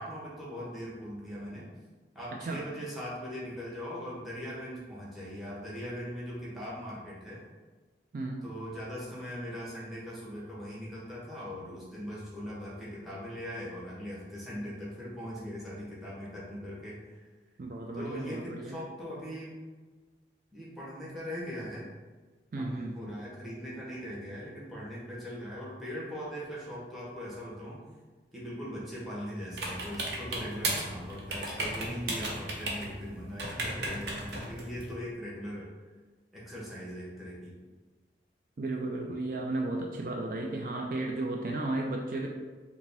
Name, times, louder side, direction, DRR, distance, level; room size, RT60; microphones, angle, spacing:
voice 1, 0.0-1.7 2.1-7.4 8.4-17.2 17.9-19.5 20.5-21.9 22.6-27.8 28.3-35.7 36.3-37.6, equal, ahead, -7 dB, 1.0 m, -40 dB
voice 2, 8.1-8.4 17.6-18.8 22.5-23.0 38.6-42.3, right 2 dB, 50° right, 1 dB, 0.4 m, -34 dB
sound 1, 29.5-34.9, right 2 dB, 80° right, 0.8 m, -36 dB
4.8 x 2.2 x 3.4 m, 1.4 s
head